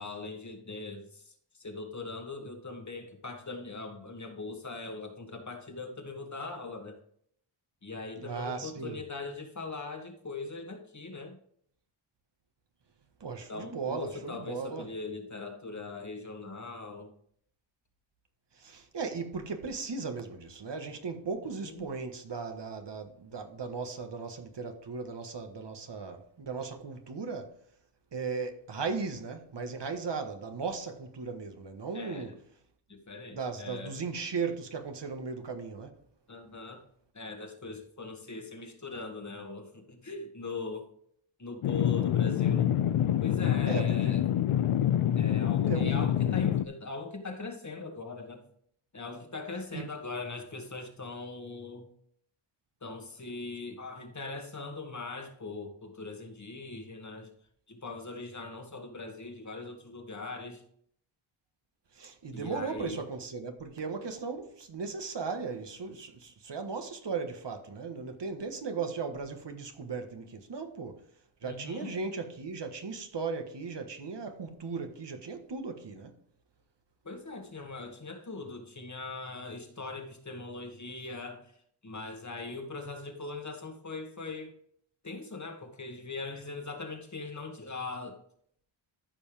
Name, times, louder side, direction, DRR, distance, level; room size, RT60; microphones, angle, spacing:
voice 1, 0.0-7.0 7.8-11.4 13.5-17.1 21.6-21.8 31.9-32.4 32.9-34.0 36.3-36.8 37.1-40.9 41.4-42.7 43.2-44.3 45.1-48.4 48.9-51.9 52.8-57.3 57.7-60.6 62.3-63.0 71.4-71.9 77.0-81.5 81.8-84.5 85.0-88.2, left 3 dB, 35° left, 1.7 m, -41 dB
voice 2, 8.2-9.0 13.2-14.9 18.6-27.5 28.1-32.3 33.3-35.9 43.7-44.2 45.7-46.0 49.7-49.8 61.9-71.0 71.4-76.1, right 5 dB, 55° right, 1.5 m, -37 dB
sound 1, 41.6-46.6, left 11 dB, 80° left, 0.6 m, -26 dB
14.0 x 5.4 x 3.4 m
wide cardioid pair, 95°, 50 cm